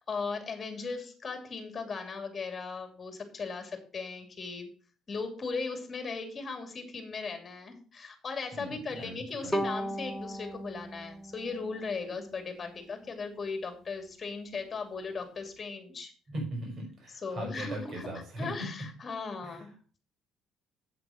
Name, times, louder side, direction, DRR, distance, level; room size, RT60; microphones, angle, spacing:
voice 1, 0.0-4.7 5.1-16.1 17.2-18.1 18.4-19.7, left 4 dB, 25° left, 6 dB, 2.7 m, -37 dB
voice 2, 8.5-9.5 16.3-18.7 19.4-19.6, right 1 dB, 40° right, 1 dB, 5.2 m, -39 dB
Bowed string instrument, 9.5-12.6, equal, 5° left, 1.1 m, -36 dB
8.2 x 7.6 x 6.4 m, 0.40 s
cardioid pair, 150°, 0 cm